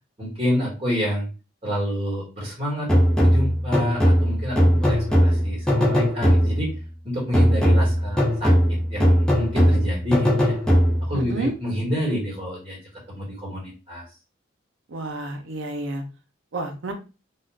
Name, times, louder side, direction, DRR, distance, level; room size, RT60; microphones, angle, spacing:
voice 1, 0.2-1.3 1.6-6.7 7.0-10.5 11.0-12.8 13.1-14.0, equal, 30° right, -3 dB, 1.3 m, -28 dB
sound 1, 2.9-6.8 7.3-11.2, equal, 5° left, 0.4 m, -19 dB
voice 2, 11.1-11.5 14.9-16.0 16.5-16.9, right 2 dB, 70° right, 4 dB, 0.6 m, -30 dB
2.4 x 2.3 x 3.2 m, 0.32 s
head